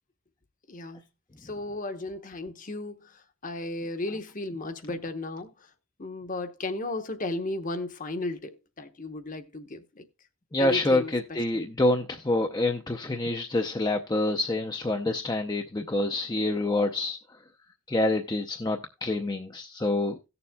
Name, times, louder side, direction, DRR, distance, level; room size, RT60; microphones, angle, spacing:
voice 1, 0.7-1.0 1.4-5.7 6.0-10.0 10.6-11.7, left 2 dB, 40° left, 0.9 m, -35 dB
voice 2, 10.5-17.2 17.9-20.2, left 2 dB, 20° left, 0.5 m, -27 dB
17.5 x 6.9 x 2.2 m
head